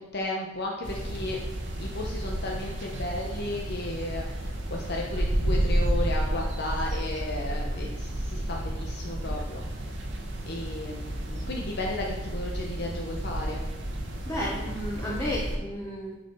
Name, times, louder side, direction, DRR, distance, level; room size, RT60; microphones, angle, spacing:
voice 1, 0.1-1.4 1.8-4.2 4.7-9.6 10.5-13.7, left 1 dB, 55° left, -1 dB, 1.1 m, -34 dB
sound 1, 0.8-15.6, right 1 dB, 65° right, 1.4 m, -31 dB
voice 2, 14.3-16.1, left 1 dB, 15° left, -5 dB, 1.4 m, -32 dB
8.6 x 5.5 x 5.6 m, 1.1 s
head